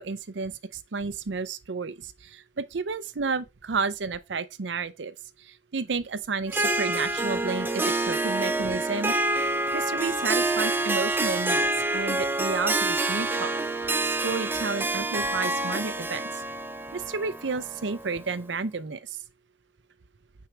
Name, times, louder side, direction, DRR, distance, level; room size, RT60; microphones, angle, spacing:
voice 1, 0.0-5.1 5.4-11.7 11.9-13.5 14.0-16.3 16.9-19.2, right 4 dB, 80° right, 0.6 m, -31 dB
Harp, 6.5-18.3, right 2 dB, 10° right, 0.5 m, -27 dB
9.1 x 4.7 x 3.3 m
head